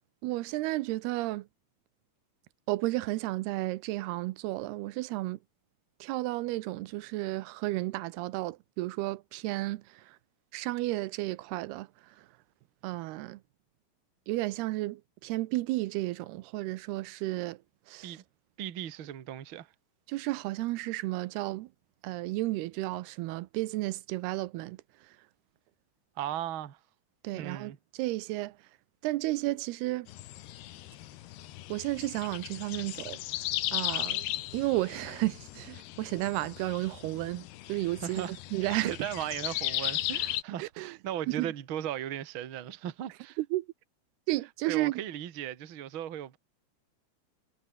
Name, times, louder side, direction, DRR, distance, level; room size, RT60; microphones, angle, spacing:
voice 1, 0.2-1.5 2.7-5.4 6.0-10.2 10.5-12.3 12.8-13.4 14.3-17.6 17.9-18.2 20.1-21.7 22.0-24.8 27.2-28.6 29.0-30.1 31.7-33.2 33.7-34.3 34.5-38.2 38.5-38.9 40.6-41.0 41.4-41.5 43.4-43.7 44.3-45.0, right 18 dB, 85° right, 2.7 m, -32 dB
voice 2, 18.6-19.7 26.2-26.8 27.3-27.8 38.0-38.3 38.6-43.4 44.7-46.4, right 11 dB, 50° right, 1.5 m, -37 dB
sound 1, 30.1-40.4, left 15 dB, 80° left, 3.2 m, -36 dB
omnidirectional pair, 4.6 m